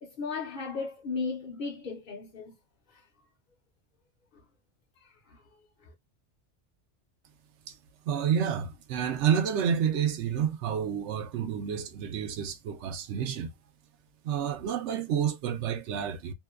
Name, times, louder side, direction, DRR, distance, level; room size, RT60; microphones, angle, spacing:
voice 1, 0.0-2.5 2.9-3.0 5.0-5.4 5.8-5.9, left 4 dB, 55° left, 0.7 m, -36 dB
voice 2, 8.1-13.5 14.2-16.3, right 8 dB, 80° right, 0.9 m, -29 dB
2.8 x 2.2 x 2.2 m
omnidirectional pair, 1.2 m